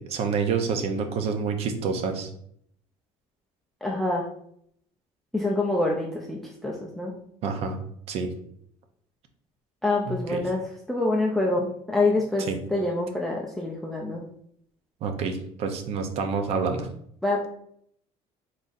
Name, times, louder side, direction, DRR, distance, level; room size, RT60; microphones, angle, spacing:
voice 1, 0.0-2.3 7.4-7.8 8.1-8.3 10.1-10.4 12.5-12.6 15.0-16.9, right 5 dB, 50° right, 6 dB, 0.6 m, -28 dB
voice 2, 3.8-4.3 5.3-7.1 9.8-14.2 17.2-17.5, left 2 dB, ahead, -1 dB, 0.4 m, -26 dB
4.0 x 3.9 x 2.5 m, 0.68 s
cardioid pair, 160°, 14 cm